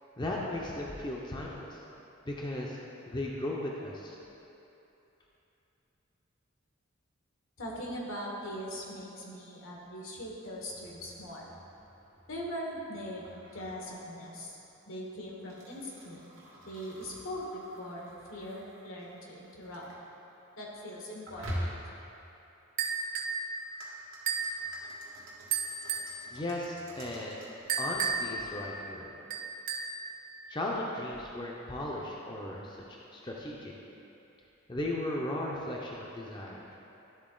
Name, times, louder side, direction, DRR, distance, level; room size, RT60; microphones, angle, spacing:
voice 1, 0.2-1.8 2.2-2.8 3.1-4.2 26.3-27.5 27.8-29.1 30.5-32.8 33.1-33.7 34.7-36.6, left 1 dB, 20° left, -3 dB, 0.5 m, -36 dB
voice 2, 7.6-11.4 12.3-13.2 13.5-14.6 14.9-16.3 16.6-19.8 20.6-21.7, equal, 85° left, -3 dB, 1.4 m, -41 dB
sound 1, 10.6-20.0 21.3-22.1 23.0-27.6, equal, 80° right, 1.5 m, -46 dB
sound 2, 22.8-23.4 24.3-24.6 25.5-26.2 27.7-28.4 29.3-30.0, right 5 dB, 40° right, 0.5 m, -32 dB
11.5 x 4.0 x 3.8 m, 2.9 s
head